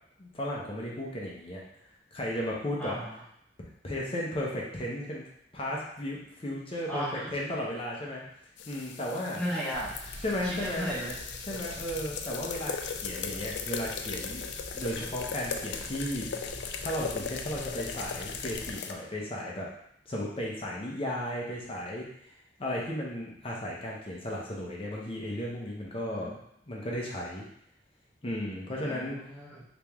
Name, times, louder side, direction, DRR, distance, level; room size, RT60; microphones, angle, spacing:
voice 1, 0.2-1.6 2.1-3.0 3.8-5.2 5.5-8.2 8.7-9.4 10.2-10.9 11.5-14.4 14.7-16.3 16.8-19.7 20.1-22.1 22.6-26.4 26.7-27.4 28.2-29.2, left 1 dB, 30° left, -4 dB, 0.7 m, -34 dB
voice 2, 2.8-3.1 6.9-7.3 9.3-10.2 10.4-11.1 26.1-26.3 28.7-29.6, equal, 5° left, -8 dB, 1.3 m, -35 dB
sound 1, 8.6-18.9, left 6 dB, 75° left, 0.4 m, -38 dB
sound 2, 9.7-18.7, equal, 30° right, 0.5 m, -46 dB
3.4 x 3.0 x 3.4 m, 0.71 s
head